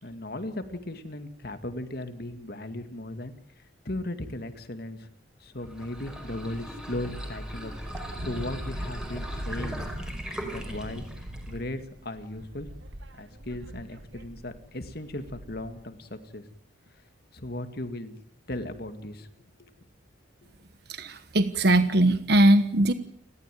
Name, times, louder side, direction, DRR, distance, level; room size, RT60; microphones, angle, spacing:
voice 1, 0.0-3.3 3.8-5.1 5.4-7.7 8.2-9.8 10.4-11.0 11.5-12.7 13.2-16.4 17.3-18.2 18.5-19.3 19.6-19.7, left 1 dB, 55° left, 8 dB, 2.2 m, -37 dB
sound 1, 5.6-11.6, equal, 5° right, 4.9 m, -39 dB
Wind, 7.7-15.9, right 1 dB, 75° right, 2.0 m, -40 dB
voice 2, 20.9-22.9, right 1 dB, 55° right, 10 dB, 1.3 m, -20 dB
30.0 x 13.5 x 9.2 m, 0.68 s
head